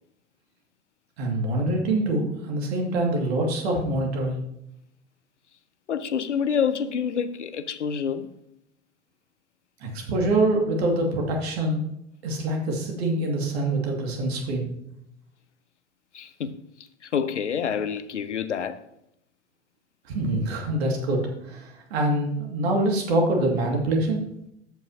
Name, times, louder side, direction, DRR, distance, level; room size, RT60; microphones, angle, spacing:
voice 1, 1.2-4.4 9.8-11.8 12.2-14.7 20.1-21.2 21.5-24.2, right 1 dB, 65° right, 2.2 m, -25 dB
voice 2, 5.9-8.3 16.1-16.6 17.0-18.8, left 7 dB, 85° left, 0.6 m, -27 dB
13.5 x 5.5 x 2.8 m
figure-of-eight pair, 80°, 34 cm